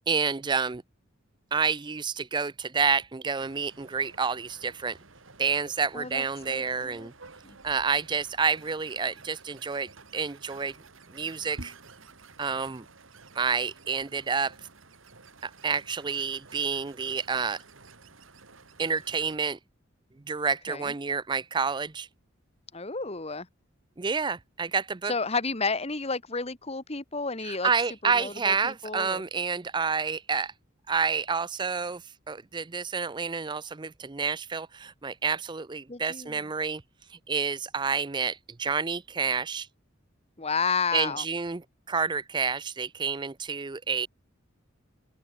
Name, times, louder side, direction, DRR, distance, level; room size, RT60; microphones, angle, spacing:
voice 1, 0.1-0.8 1.5-5.0 5.4-7.1 7.6-10.8 11.1-11.7 12.4-12.8 13.4-14.5 15.4-17.6 18.8-19.6 20.3-22.1 24.0-25.1 27.4-30.5 30.9-36.8 37.1-39.7 40.9-44.1, right 5 dB, 25° right, 0.5 m, -29 dB
sound 1, 3.4-19.4, right 3 dB, 85° right, 3.0 m, -51 dB
voice 2, 5.9-7.1 7.4-7.6 20.7-20.9 22.7-23.5 25.1-27.7 28.0-29.2 35.9-36.4 40.4-41.2, left 4 dB, 30° left, 1.7 m, -31 dB
open air
head